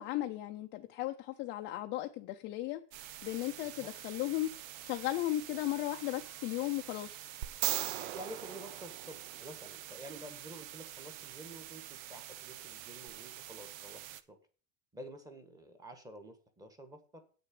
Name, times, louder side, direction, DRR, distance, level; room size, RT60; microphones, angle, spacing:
voice 1, 0.0-2.8 3.2-4.5 4.8-7.2, left 15 dB, 30° left, 5 dB, 0.4 m, -36 dB
sound 1, 2.9-14.2, right 12 dB, 85° right, 1.0 m, -48 dB
voice 2, 3.5-3.9 8.0-14.0 14.3-14.4 14.9-17.2, right 1 dB, 10° right, 9 dB, 1.2 m, -50 dB
sound 2, 7.4-9.7 13.1-13.2, right 15 dB, 55° right, 0.6 m, -37 dB
8.7 x 6.5 x 8.3 m, 0.39 s
cardioid pair, 175°, 40 cm